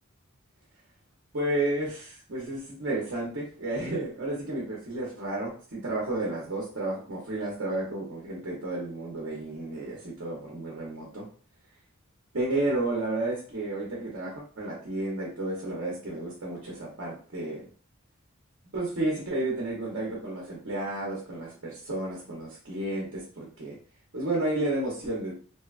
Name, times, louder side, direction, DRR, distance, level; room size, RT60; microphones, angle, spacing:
voice 1, 1.3-11.3 12.3-17.7 18.7-23.8 24.1-25.3, right 2 dB, 65° right, -4 dB, 0.8 m, -32 dB
2.7 x 2.2 x 2.4 m, 0.42 s
head